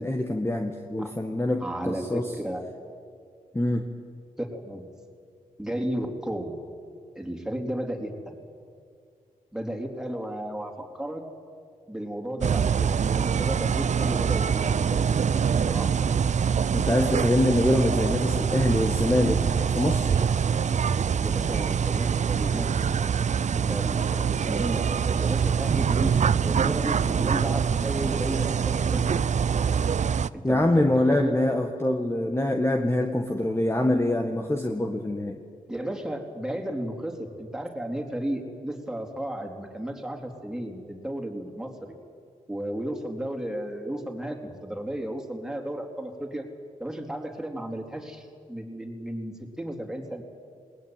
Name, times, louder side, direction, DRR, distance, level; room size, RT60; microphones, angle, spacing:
voice 1, 0.0-2.3 3.5-3.9 16.7-19.4 19.7-20.3 30.4-35.4, left 1 dB, 15° left, 3 dB, 1.8 m, -25 dB
voice 2, 1.6-2.6 4.4-4.9 5.6-6.5 7.2-8.4 9.5-11.2 11.9-15.1 15.7-15.9 21.2-22.7 23.5-26.1 26.4-29.2 30.3-31.4 35.7-41.9 42.5-46.5 46.8-50.2, right 1 dB, 5° right, 2 dB, 4.0 m, -33 dB
sound 1, 12.4-30.3, right 7 dB, 50° right, 0.6 m, -24 dB
20.0 x 18.5 x 9.2 m, 2.2 s
cardioid pair, 55°, 15 cm